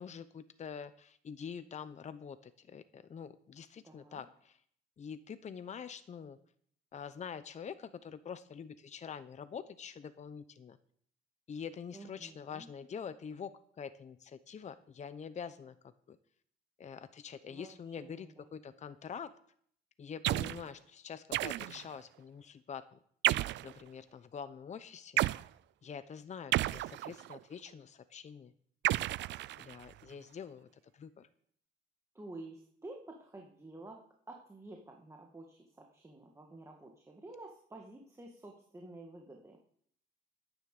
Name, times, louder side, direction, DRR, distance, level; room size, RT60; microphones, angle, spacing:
voice 1, 0.0-4.6 5.0-6.4 6.9-10.8 11.5-13.5 13.8-15.7 16.1-16.2 16.8-19.3 20.0-23.0 23.6-25.2 25.8-28.5 29.6-30.7 30.9-31.3, left 7 dB, 40° left, 12 dB, 0.8 m, -45 dB
voice 2, 3.8-4.2 11.9-12.7 17.5-17.7 18.0-18.7 32.1-34.0 34.3-39.6, right 2 dB, 15° right, 1 dB, 2.1 m, -50 dB
sound 1, 20.2-20.6 21.3-21.9 23.2-23.7 25.2-25.5 26.5-27.4 28.8-29.9, right 16 dB, 75° right, 0.4 m, -32 dB
13.0 x 10.0 x 6.8 m, 0.63 s
cardioid pair, 105°, 19 cm